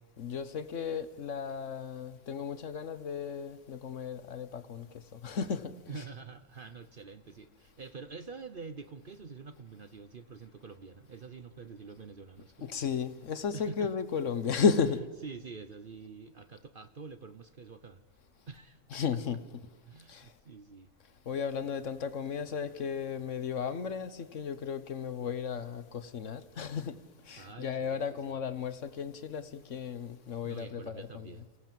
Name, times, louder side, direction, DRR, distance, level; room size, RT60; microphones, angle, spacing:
voice 1, 0.2-6.0 12.6-15.0 18.9-19.6 20.1-20.3 21.2-27.0 27.2-31.4, left 6 dB, 60° left, 1.3 m, -34 dB
voice 2, 5.9-12.7 13.5-13.9 14.7-14.8 15.2-18.0 18.5-19.0 19.9-20.9 27.4-28.0 30.4-31.4, right 5 dB, 45° right, 0.9 m, -46 dB
29.5 x 16.5 x 7.5 m
omnidirectional pair, 1.5 m